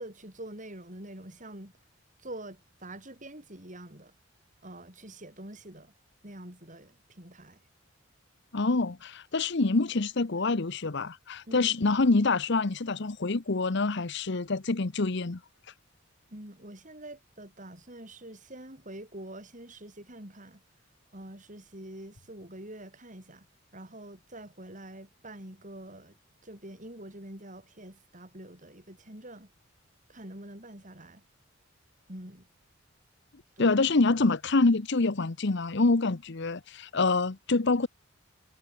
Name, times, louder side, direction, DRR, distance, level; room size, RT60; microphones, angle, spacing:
voice 1, 0.0-1.7 2.2-4.1 4.6-5.9 6.2-7.6 11.5-11.7 16.3-20.6 21.1-23.5 23.7-26.2 26.4-29.5 30.1-31.2 32.1-32.5 33.6-33.8, right 1 dB, 40° right, 7.9 m, -45 dB
voice 2, 8.5-15.4 33.6-37.9, left 3 dB, 60° left, 0.9 m, -26 dB
head